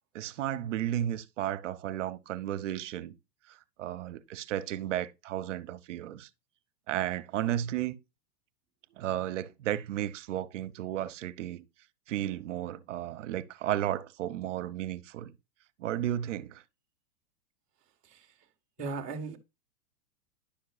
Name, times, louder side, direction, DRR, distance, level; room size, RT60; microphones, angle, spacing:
voice 1, 0.1-3.1 3.5-6.3 6.9-8.0 9.0-11.6 12.1-15.3 15.8-16.6, right 12 dB, 50° right, 0.7 m, -33 dB
voice 2, 18.8-19.4, right 4 dB, 10° right, 0.3 m, -37 dB
10.5 x 5.8 x 2.3 m
supercardioid pair, 165°, 46 cm